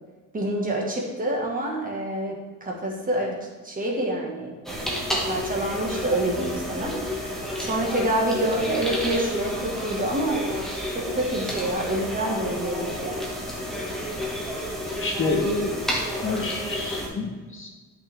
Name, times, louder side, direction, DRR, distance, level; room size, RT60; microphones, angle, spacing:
voice 1, 0.3-4.5 5.3-7.3 7.6-10.5 10.9-13.1, right 1 dB, 25° right, -1 dB, 1.7 m, -27 dB
sound 1, 4.7-17.1, equal, ahead, 1.8 m, -31 dB
voice 2, 15.0-15.9 16.2-17.8, left 3 dB, 40° left, 2 dB, 1.2 m, -28 dB
11.5 x 6.1 x 3.5 m, 1.3 s
cardioid pair, 145°, 33 cm